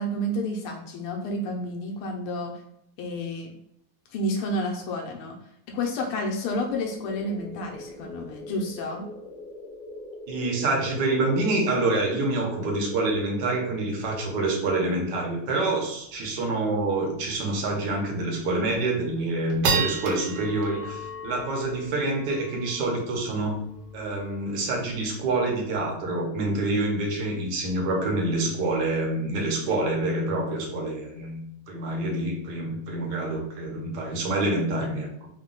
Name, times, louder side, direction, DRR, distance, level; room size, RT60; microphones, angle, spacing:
voice 1, 0.0-2.5 3.0-3.5 4.1-5.4 5.7-9.1, left 1 dB, 80° left, 2 dB, 1.5 m, -30 dB
sound 1, 6.6-15.7, left 1 dB, 55° left, 1.7 m, -41 dB
voice 2, 10.3-23.6 23.9-35.3, right 2 dB, 60° right, 0 dB, 1.3 m, -27 dB
sound 2, 16.1-16.2 16.5-16.6 17.0-17.2 17.7-17.8 18.4-18.7 19.2-25.7, right 4 dB, 80° right, 1.6 m, -33 dB
3.9 x 2.2 x 3.7 m, 0.76 s
omnidirectional pair, 2.4 m